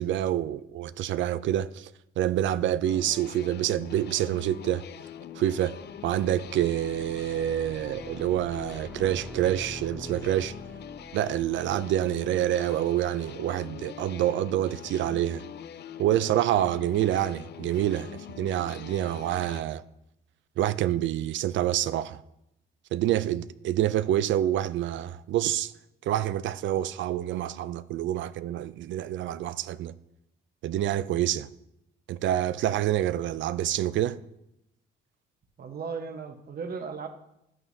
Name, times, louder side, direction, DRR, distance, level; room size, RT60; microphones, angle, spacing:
voice 1, 0.0-1.9 2.2-4.8 5.3-5.8 6.0-10.5 11.1-15.4 16.0-19.8 20.6-22.2 22.9-25.7 26.0-29.9 30.6-31.5 32.1-34.2, right 12 dB, 70° right, 0.4 m, -27 dB
sound 1, 2.8-19.6, left 10 dB, 55° left, 0.5 m, -43 dB
sound 2, 5.6-13.1, right 1 dB, 5° right, 0.6 m, -47 dB
voice 2, 35.6-37.1, right 5 dB, 50° right, 1.1 m, -36 dB
11.0 x 8.9 x 2.7 m
cardioid pair, 90°, 20 cm